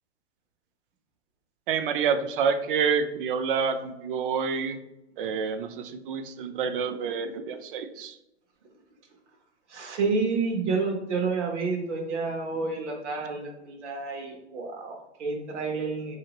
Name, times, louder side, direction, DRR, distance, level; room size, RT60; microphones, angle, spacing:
voice 1, 1.7-4.8 5.2-8.2, right 6 dB, 50° right, 9 dB, 0.4 m, -28 dB
voice 2, 9.7-16.2, right 4 dB, 80° right, 2 dB, 1.1 m, -29 dB
2.8 x 2.8 x 2.9 m, 0.91 s
hypercardioid pair, 145°, 35 cm